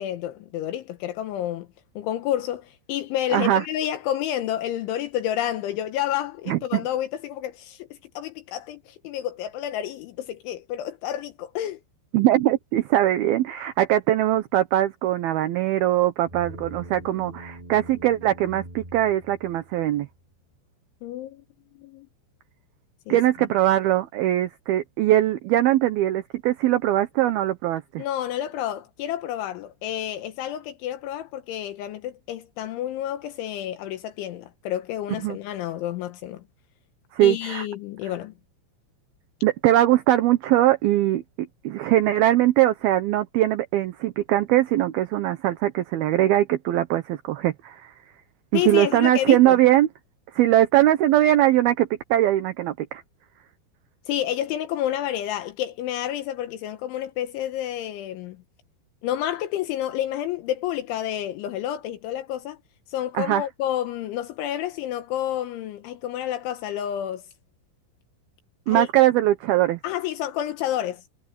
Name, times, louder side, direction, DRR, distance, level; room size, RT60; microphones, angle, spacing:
voice 1, 0.0-1.7 2.0-11.8 21.0-21.5 21.8-22.1 23.1-23.2 28.0-36.4 37.2-38.3 48.5-49.6 54.1-58.4 59.0-62.6 62.9-67.2 68.7-68.9 69.8-71.0, left 12 dB, 80° left, 3.5 m, -29 dB
voice 2, 3.3-3.6 6.5-6.8 12.1-20.1 23.1-28.0 35.2-35.4 37.1-37.7 39.4-47.9 48.5-49.9 50.3-53.0 63.1-63.4 68.7-69.8, right 14 dB, 75° right, 2.3 m, -21 dB
sound 1, 16.3-20.0, right 1 dB, 5° right, 7.4 m, -42 dB
omnidirectional pair, 5.6 m